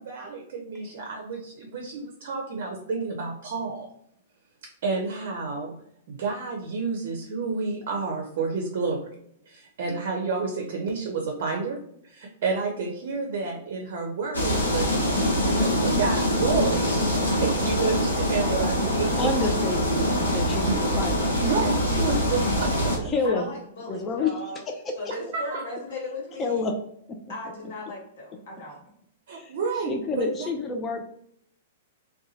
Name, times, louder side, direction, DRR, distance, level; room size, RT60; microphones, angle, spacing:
voice 1, 0.0-3.9 4.8-5.7 6.1-9.1 9.5-19.3 20.7-20.8 21.4-23.1 25.5-25.6 29.3-30.5, right 4 dB, 55° right, 1 dB, 0.5 m, -30 dB
sound 1, 14.3-23.0, equal, 90° left, 0.8 m, -24 dB
voice 2, 19.2-20.0 20.3-21.3 23.0-23.5 23.9-24.9 26.4-26.8 29.3-29.5 29.9-31.0, left 4 dB, 20° left, 3 dB, 0.4 m, -28 dB
voice 3, 23.2-24.6 25.0-26.6 27.3-28.8, left 2 dB, 55° left, -3 dB, 1.3 m, -37 dB
2.6 x 2.2 x 2.7 m, 0.70 s
figure-of-eight pair, 105°, 0 cm